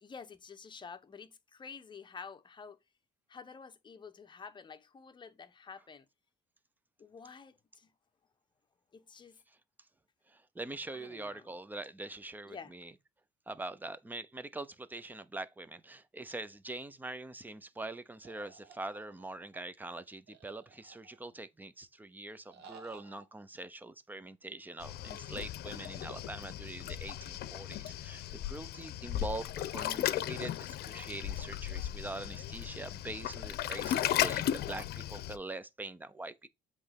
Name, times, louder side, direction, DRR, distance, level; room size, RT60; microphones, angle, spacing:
voice 1, 0.0-2.8 3.3-6.0 7.0-7.9 8.9-9.4 10.9-11.6 12.4-12.7, left 5 dB, 25° left, 0.9 m, -49 dB
voice 2, 10.3-12.9 13.5-36.5, right 2 dB, 10° right, 0.7 m, -43 dB
sound 1, 18.2-19.6 20.3-21.4 22.5-23.2, right 6 dB, 85° right, 1.5 m, -56 dB
Waves surf, 24.8-35.4, left 12 dB, 70° left, 0.7 m, -36 dB
7.8 x 3.2 x 5.2 m
cardioid pair, 110°, 17 cm